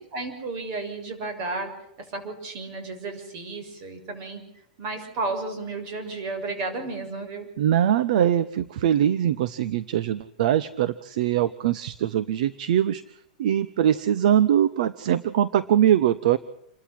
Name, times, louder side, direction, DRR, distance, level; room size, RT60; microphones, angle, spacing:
voice 1, 0.1-1.7 2.1-4.4 4.8-7.5, right 3 dB, 40° right, 7 dB, 7.0 m, -32 dB
voice 2, 7.6-13.0 13.4-16.4, right 10 dB, 65° right, 16 dB, 1.0 m, -22 dB
28.5 x 13.0 x 7.7 m, 0.75 s
supercardioid pair, 155°, 4 cm